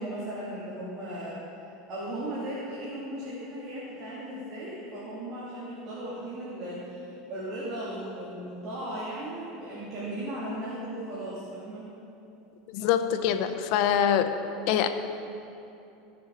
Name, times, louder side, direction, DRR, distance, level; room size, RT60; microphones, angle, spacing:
voice 1, 0.0-1.4 1.9-11.9, right 1 dB, 40° right, -8 dB, 2.5 m, -36 dB
voice 2, 12.7-14.3 14.7-14.9, left 9 dB, 60° left, 8 dB, 0.6 m, -24 dB
16.0 x 6.8 x 3.9 m, 2.8 s
supercardioid pair, 135°, 0 cm